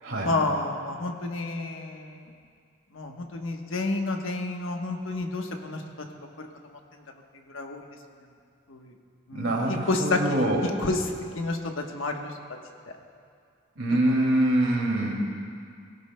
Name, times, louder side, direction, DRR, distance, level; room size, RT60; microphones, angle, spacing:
voice 1, 0.2-2.2 2.9-5.8 6.4-6.5 6.9-7.0 7.5-7.8 8.7-8.9 9.3-11.0 11.3-12.3 14.1-14.3, left 2 dB, 90° left, 3 dB, 1.1 m, -30 dB
voice 2, 9.3-10.6 13.8-15.2, right 1 dB, 85° right, -1 dB, 2.4 m, -24 dB
18.5 x 16.0 x 2.2 m, 2.3 s
head